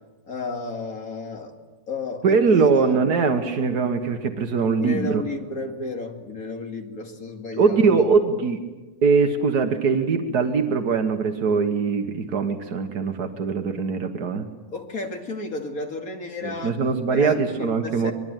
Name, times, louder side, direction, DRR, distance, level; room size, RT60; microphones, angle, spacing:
voice 1, 0.2-1.5 1.9-3.0 4.8-8.0 14.7-16.8 17.1-18.1, left 3 dB, 30° left, 3 dB, 2.3 m, -33 dB
voice 2, 2.2-5.2 7.6-8.6 9.0-14.5 16.4-18.1, right 5 dB, 60° right, 6 dB, 1.0 m, -21 dB
25.0 x 22.0 x 9.1 m, 1.2 s
omnidirectional pair, 3.9 m